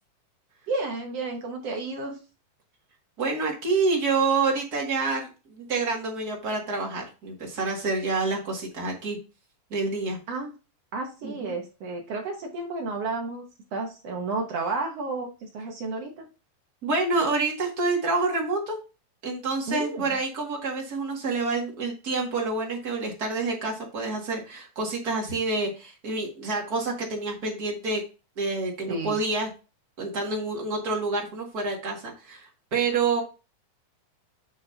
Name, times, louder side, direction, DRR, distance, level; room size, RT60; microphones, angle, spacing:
voice 1, 0.7-2.2 10.3-10.5 10.9-13.4 13.7-16.3 19.7-20.2 28.9-29.2, right 3 dB, 60° right, 2 dB, 1.7 m, -32 dB
voice 2, 3.2-5.3 5.6-9.2 9.7-10.2 11.2-11.5 16.8-18.8 19.2-28.0 28.4-29.5 30.0-33.2, right 3 dB, 30° right, -1 dB, 2.1 m, -27 dB
7.9 x 6.6 x 2.8 m, 0.31 s
omnidirectional pair, 4.1 m